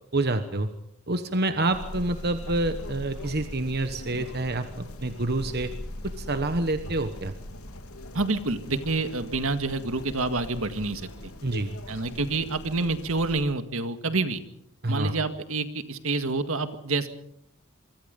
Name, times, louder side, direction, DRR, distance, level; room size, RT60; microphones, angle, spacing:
voice 1, 0.1-0.7 1.1-5.7 6.0-7.3 11.4-11.7 14.8-15.1, right 2 dB, 45° right, 8 dB, 1.2 m, -27 dB
sound 1, 1.7-13.4, left 1 dB, 90° left, 3.0 m, -40 dB
voice 2, 8.1-11.1 11.9-14.4 14.9-17.1, right 3 dB, 70° right, 9 dB, 2.0 m, -28 dB
25.5 x 23.5 x 5.4 m, 0.74 s
head